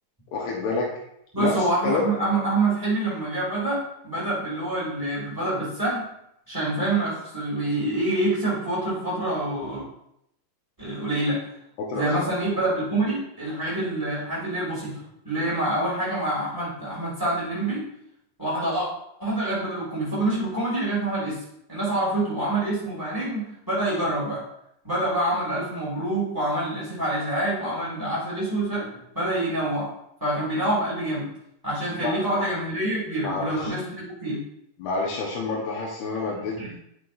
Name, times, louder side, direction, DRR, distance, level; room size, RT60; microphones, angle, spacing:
voice 1, 0.3-0.9 1.4-2.0 11.8-12.3 32.0-32.5 33.2-33.7 34.8-36.6, left 3 dB, 70° left, -3 dB, 2.7 m, -28 dB
voice 2, 1.3-6.0 6.5-9.8 10.8-11.4 11.9-17.9 18.4-18.9 19.2-21.4 21.7-24.4 24.8-28.9 29.1-29.9 30.2-31.3 31.6-34.4 36.6-36.7, right 1 dB, 20° right, -10 dB, 0.6 m, -26 dB
10.0 x 5.9 x 2.6 m, 0.76 s
omnidirectional pair, 5.2 m